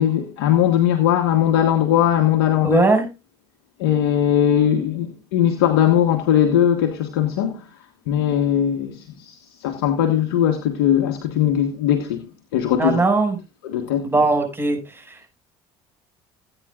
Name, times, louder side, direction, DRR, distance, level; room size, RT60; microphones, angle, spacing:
voice 1, 0.0-2.9 3.8-7.6 8.1-9.3 9.6-12.2 12.5-13.0 13.6-14.1, left 10 dB, 80° left, 1.3 m, -19 dB
voice 2, 2.6-3.1 12.8-13.4 14.0-14.8 15.1-15.2, right 3 dB, 15° right, 6.1 m, -19 dB
17.5 x 9.0 x 2.4 m
hypercardioid pair, 70°, 13 cm